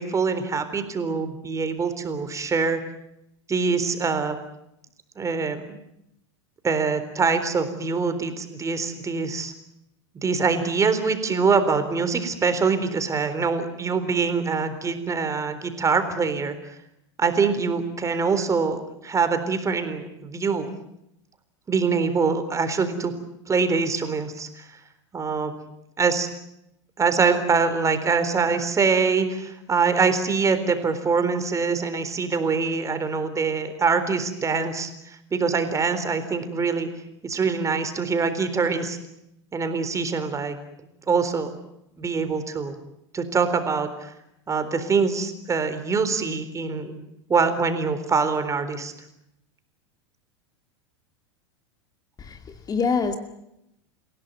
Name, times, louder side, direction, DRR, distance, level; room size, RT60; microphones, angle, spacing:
voice 1, 0.0-2.8 3.5-4.4 5.2-5.8 6.6-9.5 10.2-16.5 17.2-20.7 21.7-23.1 23.5-24.7 25.1-25.6 26.0-26.3 27.0-36.9 37.2-39.0 39.5-40.6 41.1-41.5 42.0-42.7 43.1-44.1 44.5-47.0 47.3-48.9, right 5 dB, 20° right, 3.9 m, -24 dB
voice 2, 52.2-53.2, left 5 dB, 25° left, 2.3 m, -25 dB
29.0 x 17.0 x 9.4 m
hypercardioid pair, 100°, 15 cm